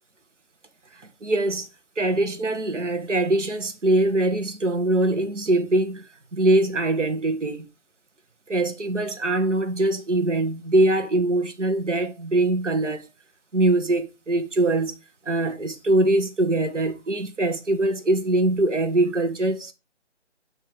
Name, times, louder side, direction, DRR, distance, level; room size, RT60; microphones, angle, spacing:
voice 1, 1.0-1.7 2.0-6.1 6.3-7.7 8.5-13.1 13.5-15.0 15.2-19.7, right 2 dB, 85° right, 1.5 m, -23 dB
8.7 x 3.0 x 4.4 m
figure-of-eight pair, 160°, 35 cm